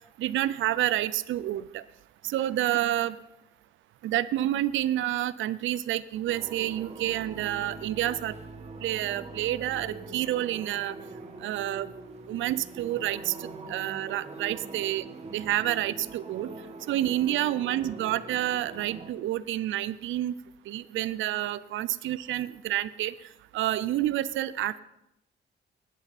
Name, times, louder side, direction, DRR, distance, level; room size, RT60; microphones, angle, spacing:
voice 1, 0.2-1.8 2.2-3.2 4.0-8.4 8.8-11.0 11.4-11.9 12.3-15.0 15.3-16.5 16.9-20.3 20.7-23.1 23.5-24.8, right 13 dB, 75° right, 18 dB, 0.5 m, -29 dB
sound 1, 6.3-19.1, right 3 dB, 35° right, 1.7 m, -43 dB
17.5 x 11.5 x 4.2 m, 0.88 s
cardioid pair, 90°, 20 cm